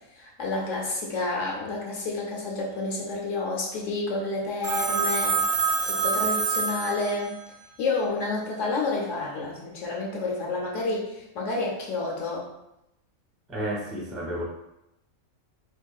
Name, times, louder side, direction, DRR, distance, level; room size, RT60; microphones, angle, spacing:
voice 1, 0.2-7.3 7.8-12.5, left 3 dB, 70° left, -3 dB, 1.2 m, -30 dB
Telephone, 4.6-7.5, right 4 dB, 85° right, 1.0 m, -26 dB
voice 2, 13.5-14.4, equal, ahead, -4 dB, 0.4 m, -31 dB
4.4 x 2.7 x 2.4 m, 0.87 s
omnidirectional pair, 1.4 m